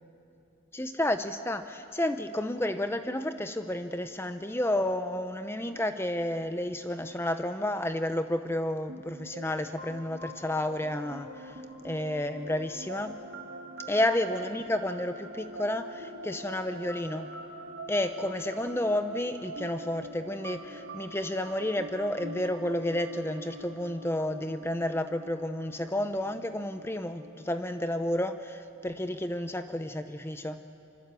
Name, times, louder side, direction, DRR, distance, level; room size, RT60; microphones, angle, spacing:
voice 1, 0.7-11.6 11.8-13.1 13.9-17.3 17.9-30.6, left 1 dB, 10° left, 9 dB, 0.7 m, -31 dB
sound 1, 8.9-28.4, right 1 dB, 70° right, 2.0 m, -44 dB
25.0 x 23.5 x 8.3 m, 2.6 s
head